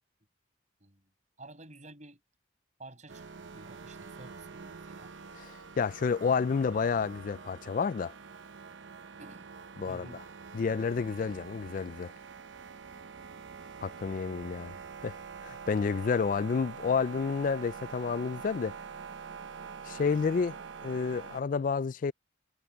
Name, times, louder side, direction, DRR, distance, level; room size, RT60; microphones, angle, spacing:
voice 1, 1.4-2.2 2.8-3.3 3.5-5.1 6.7-6.8 9.2-9.5 9.9-10.2, right 2 dB, 40° right, 6.5 m, -51 dB
sound 1, 3.1-21.4, right 5 dB, 75° right, 0.9 m, -45 dB
voice 2, 5.3-8.1 9.8-10.2 10.5-12.1 13.8-14.7 15.0-18.8 19.8-22.1, left 5 dB, 45° left, 0.3 m, -30 dB
head